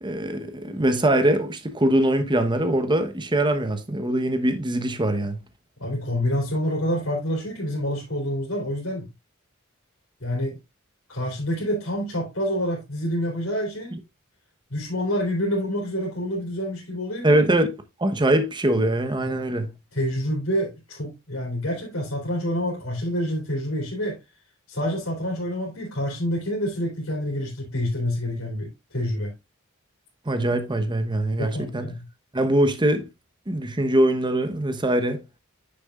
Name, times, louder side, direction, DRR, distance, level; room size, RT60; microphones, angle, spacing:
voice 1, 0.0-5.4 13.9-14.0 17.2-17.7 18.0-19.7 30.3-31.9 32.3-33.1 33.5-35.2, right 1 dB, 20° right, 0.9 m, -22 dB
voice 2, 5.8-9.0 10.2-10.6 11.1-14.0 14.7-17.4 19.2-19.4 19.9-24.2 24.7-29.3 31.4-31.9, equal, 80° left, 3.1 m, -27 dB
9.2 x 6.9 x 2.4 m
head